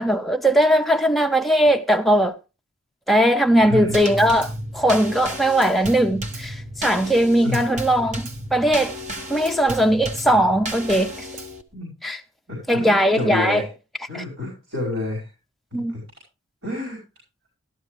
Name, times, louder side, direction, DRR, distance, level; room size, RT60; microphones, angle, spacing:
voice 1, 0.0-2.4 3.1-8.9 9.3-11.3 12.0-12.2 12.7-13.6 14.1-14.2 15.7-16.0, right 1 dB, ahead, 0.5 m, -19 dB
voice 2, 3.6-3.9 4.2-4.4 7.4-7.8 11.7-11.9 12.5-13.7 14.1-15.3 15.9-16.0 16.6-17.0, left 2 dB, 70° right, 5.0 m, -29 dB
Drum kit / Snare drum / Bass drum, 3.9-11.6, equal, 35° right, 1.0 m, -33 dB
13.5 x 12.0 x 3.2 m
head